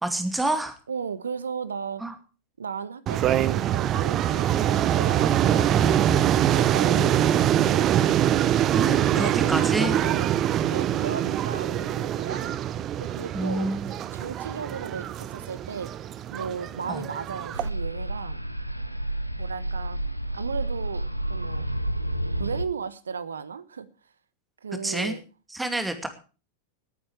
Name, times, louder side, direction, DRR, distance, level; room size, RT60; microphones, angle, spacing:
voice 1, 0.0-0.8 2.0-2.1 8.7-10.0 13.3-13.9 16.9-17.0 24.8-25.1 25.5-26.1, right 1 dB, 5° right, 2.4 m, -28 dB
voice 2, 0.9-2.0 2.6-7.9 8.9-10.3 10.7-12.6 13.0-13.7 14.1-15.9 16.3-18.4 19.4-20.0 20.3-21.0 21.3-21.7 22.4-23.9 24.6-25.2, right 6 dB, 70° right, 1.1 m, -35 dB
sound 1, 3.1-17.7, right 11 dB, 30° right, 0.7 m, -24 dB
sound 2, 17.5-22.7, right 1 dB, 90° right, 0.9 m, -30 dB
19.0 x 9.0 x 4.7 m
figure-of-eight pair, 90°, 0 cm